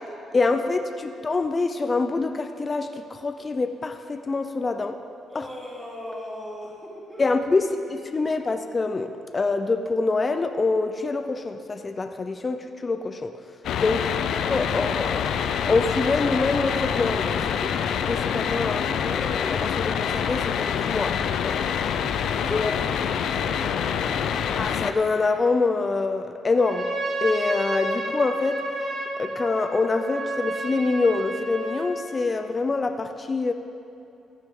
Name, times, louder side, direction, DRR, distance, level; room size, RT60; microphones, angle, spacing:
voice 1, 0.3-5.0 5.3-5.5 7.2-13.4 13.8-14.2 14.5-15.1 15.7-21.6 22.5-22.8 24.6-26.9 27.2-28.6 29.1-33.5, left 3 dB, 30° left, 7 dB, 0.6 m, -25 dB
voice 2, 5.3-7.9 8.2-8.4 22.3-24.2, equal, ahead, -8 dB, 3.0 m, -40 dB
sound 1, 13.6-24.9, left 8 dB, 75° left, 0.5 m, -26 dB
Trumpet, 26.5-32.0, right 1 dB, 40° right, 3.1 m, -31 dB
14.5 x 9.1 x 3.8 m, 2.7 s
cardioid pair, 90°, 0 cm